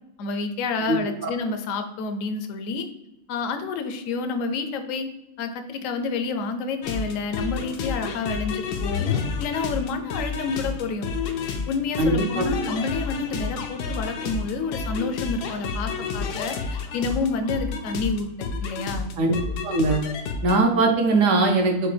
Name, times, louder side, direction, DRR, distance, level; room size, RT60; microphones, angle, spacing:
voice 1, 0.2-2.9 3.3-5.1 5.4-9.0 9.4-11.1 11.7-19.1, left 4 dB, 70° left, 7 dB, 0.8 m, -29 dB
sound 1, 6.8-20.6, left 5 dB, 90° left, 1.2 m, -30 dB
voice 2, 12.0-12.5 19.2-19.4 19.6-20.0 20.4-21.9, right 2 dB, 65° right, 3 dB, 0.9 m, -20 dB
6.5 x 2.2 x 3.2 m, 0.92 s
omnidirectional pair, 1.6 m